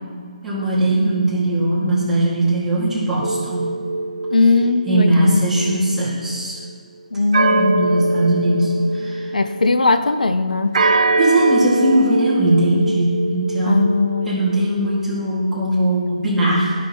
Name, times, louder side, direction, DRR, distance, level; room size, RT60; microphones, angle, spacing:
voice 1, 0.4-3.7 4.9-6.6 7.5-9.3 11.2-16.7, right 1 dB, 5° right, -9 dB, 2.2 m, -19 dB
sound 1, 3.2-6.4 7.3-9.8 10.7-15.0, right 3 dB, 60° right, 0.4 m, -23 dB
voice 2, 4.3-5.4 7.1-7.9 9.3-10.8 13.6-14.3, left 3 dB, 80° left, 10 dB, 0.4 m, -18 dB
13.0 x 6.1 x 3.1 m, 2.1 s
figure-of-eight pair, 145°, 4 cm